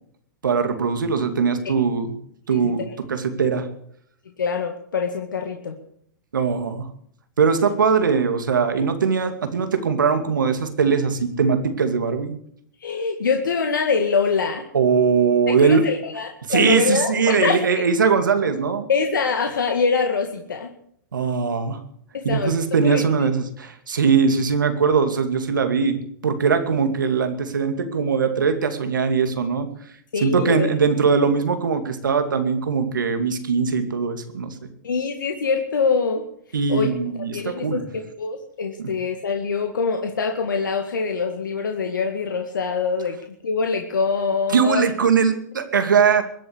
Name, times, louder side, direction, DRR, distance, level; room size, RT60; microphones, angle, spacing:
voice 1, 0.4-2.1 2.5-3.7 6.3-6.9 7.4-12.3 14.7-15.9 16.5-18.9 21.1-21.8 22.2-26.0 26.2-29.7 30.2-34.7 36.5-37.8 38.8-38.9 44.5-46.2, right 5 dB, 85° right, 8 dB, 2.5 m, -21 dB
voice 2, 2.5-2.9 4.4-5.8 12.8-14.6 15.5-17.8 18.9-20.7 22.1-22.5 22.8-23.1 30.1-30.7 34.8-36.2 36.7-36.9 37.3-43.2 43.4-44.9, left 5 dB, 85° left, 4 dB, 2.0 m, -24 dB
22.5 x 7.9 x 8.2 m, 0.66 s
hypercardioid pair, 115°, 10 cm